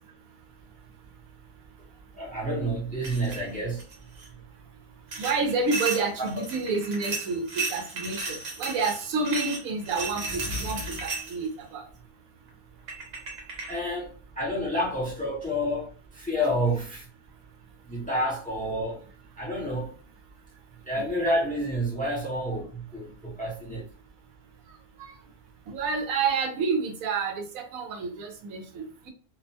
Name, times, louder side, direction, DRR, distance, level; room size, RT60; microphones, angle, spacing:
voice 1, 2.1-3.8 6.2-6.3 13.7-17.1 17.9-19.0 19.4-19.9 20.8-23.9, equal, 10° left, 0.4 m, -29 dB
sound 1, 3.0-3.4 3.8-4.3 5.1-11.5 12.5-12.6 12.9-13.8, right 4 dB, 65° right, 1.2 m, -34 dB
voice 2, 5.2-11.8 25.0-25.1 25.7-29.1, right 4 dB, 85° right, 1.1 m, -29 dB
sound 2, 9.9-11.4, left 1 dB, 45° right, 0.8 m, -38 dB
2.7 x 2.1 x 2.6 m
omnidirectional pair, 1.4 m